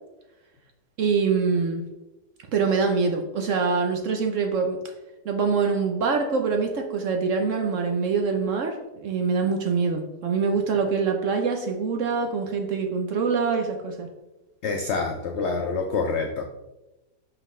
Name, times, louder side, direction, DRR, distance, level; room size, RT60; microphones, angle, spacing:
voice 1, 1.0-1.9 2.5-4.8 5.2-14.1, right 5 dB, 60° right, 3 dB, 0.8 m, -24 dB
voice 2, 14.6-16.4, left 4 dB, 75° left, 4 dB, 0.6 m, -26 dB
5.8 x 5.5 x 3.1 m, 1.0 s
omnidirectional pair, 1.8 m